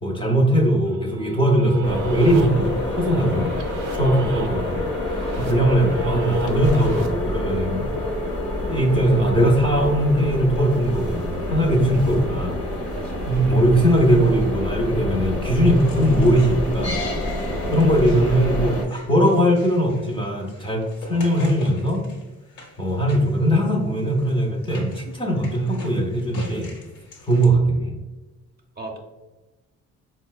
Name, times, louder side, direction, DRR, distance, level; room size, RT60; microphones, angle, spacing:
voice 1, 0.0-7.9 8.7-12.6 13.3-17.0 17.7-22.1 22.8-26.7 27.3-28.0, right 1 dB, 15° left, -1 dB, 0.5 m, -20 dB
sound 1, 0.8-7.1, right 8 dB, 85° right, 0.5 m, -41 dB
sound 2, 1.8-18.9, left 1 dB, 50° left, 0.8 m, -27 dB
voice 2, 12.9-13.4 17.5-17.7 21.1-21.2 28.8-29.0, right 3 dB, 30° right, 1 dB, 0.6 m, -36 dB
sound 3, 15.6-27.4, left 2 dB, 80° left, 1.0 m, -45 dB
4.2 x 2.1 x 2.3 m, 1.1 s
cardioid pair, 90°, 30 cm